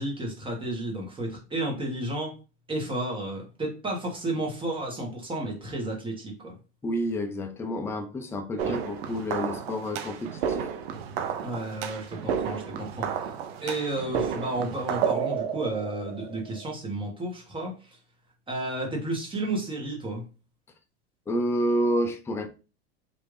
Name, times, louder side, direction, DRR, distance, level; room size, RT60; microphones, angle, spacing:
voice 1, 0.0-2.3 2.7-6.6 8.6-8.8 11.4-13.3 13.6-18.0 18.5-20.2, right 2 dB, 15° right, 1.3 m, -32 dB
voice 2, 6.8-10.7 21.3-22.5, equal, 10° left, 0.4 m, -29 dB
sound 1, 8.6-16.7, right 7 dB, 75° right, 0.7 m, -32 dB
3.1 x 2.6 x 3.3 m
supercardioid pair, 115°, 31 cm